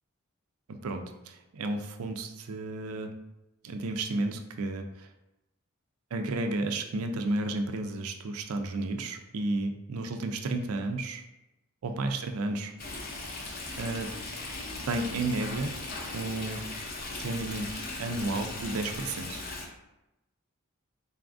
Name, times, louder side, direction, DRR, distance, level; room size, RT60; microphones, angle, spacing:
voice 1, 0.7-3.1 3.6-5.1 6.1-11.2 11.8-12.7 13.8-14.1 14.9-15.7 16.1-16.6 17.1-19.4, right 2 dB, 90° right, 6 dB, 0.4 m, -32 dB
Stream, 12.8-19.7, left 2 dB, 45° left, 0.6 m, -38 dB
4.0 x 3.5 x 2.5 m, 0.94 s
head